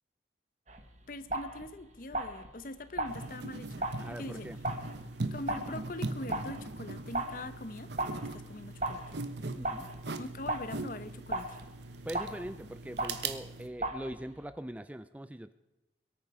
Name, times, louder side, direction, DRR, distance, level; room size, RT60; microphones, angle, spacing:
sound 1, 0.7-14.5, right 1 dB, 40° right, 1.3 m, -39 dB
voice 1, 1.1-4.5 5.3-7.9 8.3-9.0 10.2-11.6, left 2 dB, 50° left, 12 dB, 0.9 m, -43 dB
sound 2, 3.1-13.7, right 3 dB, 70° right, 1.1 m, -40 dB
voice 2, 4.0-4.6 9.5-9.9 12.0-15.5, right 1 dB, 10° right, 12 dB, 0.4 m, -42 dB
22.5 x 9.0 x 4.9 m, 1.0 s
head